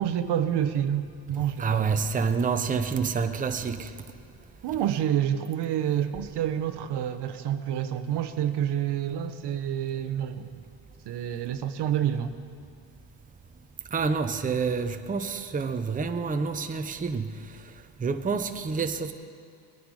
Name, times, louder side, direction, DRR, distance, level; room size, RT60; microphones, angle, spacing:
voice 1, 0.0-2.0 4.6-10.6 11.0-12.4, right 10 dB, 60° right, 1.0 m, -28 dB
voice 2, 1.6-3.9 13.9-17.2 18.0-19.1, right 5 dB, 20° right, 0.8 m, -28 dB
21.5 x 10.5 x 4.8 m
cardioid pair, 100°, 45 cm